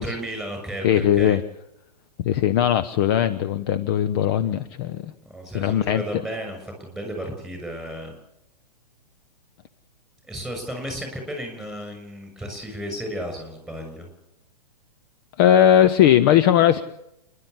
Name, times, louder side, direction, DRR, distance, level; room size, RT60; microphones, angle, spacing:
voice 1, 0.0-1.4 5.2-8.1 10.3-14.1, equal, ahead, 3 dB, 6.7 m, -33 dB
voice 2, 0.8-1.4 2.2-5.1 5.5-6.2 15.4-16.8, left 10 dB, 35° left, 11 dB, 0.9 m, -19 dB
29.0 x 11.5 x 8.3 m, 0.84 s
figure-of-eight pair, 110°, 21 cm